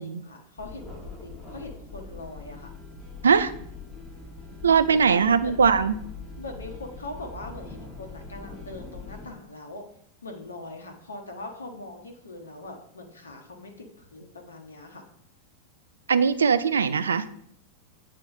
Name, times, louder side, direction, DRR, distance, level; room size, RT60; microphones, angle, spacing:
voice 1, 0.0-2.7 4.9-5.6 6.4-9.8 10.2-15.0, left 2 dB, 75° left, 3 dB, 1.0 m, -41 dB
sound 1, 0.6-9.3, left 3 dB, 5° left, 2.2 m, -42 dB
voice 2, 4.6-6.0 16.1-17.3, right 6 dB, 70° right, 12 dB, 0.3 m, -20 dB
8.6 x 4.2 x 2.6 m, 0.69 s
figure-of-eight pair, 90°, 0 cm